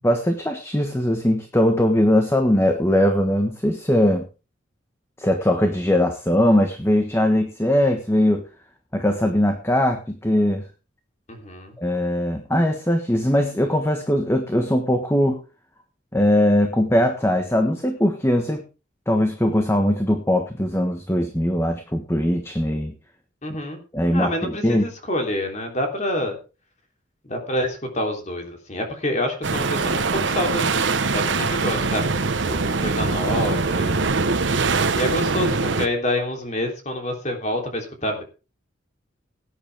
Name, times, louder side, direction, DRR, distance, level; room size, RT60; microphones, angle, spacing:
voice 1, 0.0-4.2 5.2-8.4 8.9-10.6 11.8-15.4 16.1-18.6 19.1-22.9 23.9-24.9, left 1 dB, 15° left, 5 dB, 1.3 m, -20 dB
voice 2, 11.3-11.7 23.4-23.8 24.1-26.4 27.2-32.0 32.4-34.3 34.9-38.2, left 1 dB, 35° left, 3 dB, 3.4 m, -27 dB
sound 1, 29.4-35.9, right 4 dB, 70° right, 1.0 m, -22 dB
18.0 x 9.9 x 3.5 m, 0.32 s
head